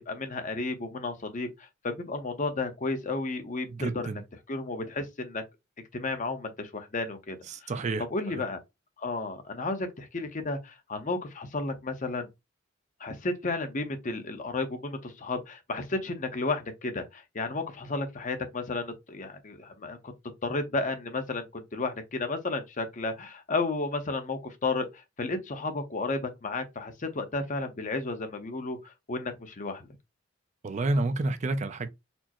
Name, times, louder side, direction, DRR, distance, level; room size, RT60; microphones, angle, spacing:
voice 1, 0.1-1.5 1.8-4.2 4.5-5.4 5.9-7.4 7.6-7.7 8.1-8.6 9.0-12.3 13.0-20.1 20.4-24.9 25.2-29.9, left 3 dB, 40° left, 0.7 m, -32 dB
voice 2, 3.7-4.2 7.5-8.0 30.6-31.9, right 2 dB, 35° right, 0.4 m, -29 dB
4.3 x 2.0 x 2.9 m
head